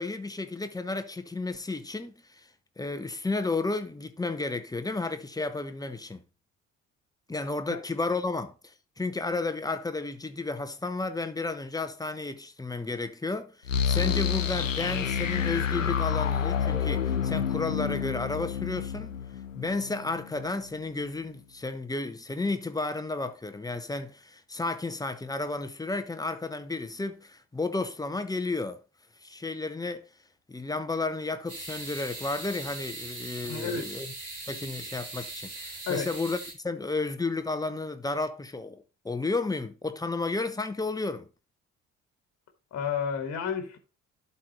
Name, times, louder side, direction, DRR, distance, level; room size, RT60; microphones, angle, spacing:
voice 1, 0.0-2.5 2.8-6.2 7.3-19.1 19.6-28.8 29.2-30.0 30.5-34.1 34.5-36.4 36.6-41.3, left 3 dB, 10° left, 1.0 m, -32 dB
sound 1, 13.7-20.5, left 7 dB, 85° left, 0.7 m, -29 dB
sound 2, 31.5-36.5, right 2 dB, 40° right, 4.5 m, -40 dB
voice 2, 33.5-33.8 35.9-36.1 42.7-43.8, left 6 dB, 40° left, 1.6 m, -31 dB
11.5 x 4.3 x 4.2 m
figure-of-eight pair, 50°, 38 cm